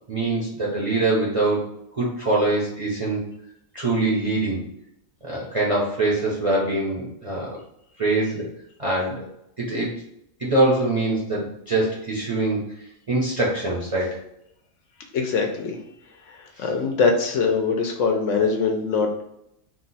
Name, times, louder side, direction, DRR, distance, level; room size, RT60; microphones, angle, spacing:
voice 1, 0.1-1.7 2.0-3.2 3.7-4.6 5.2-7.6 8.0-8.5 8.8-9.3 9.6-9.9 10.4-12.6 13.1-14.2, right 2 dB, 35° right, -5 dB, 0.6 m, -23 dB
voice 2, 15.1-15.8 16.4-19.2, left 4 dB, 70° left, 3 dB, 0.9 m, -22 dB
2.8 x 2.2 x 3.9 m, 0.78 s
omnidirectional pair, 1.4 m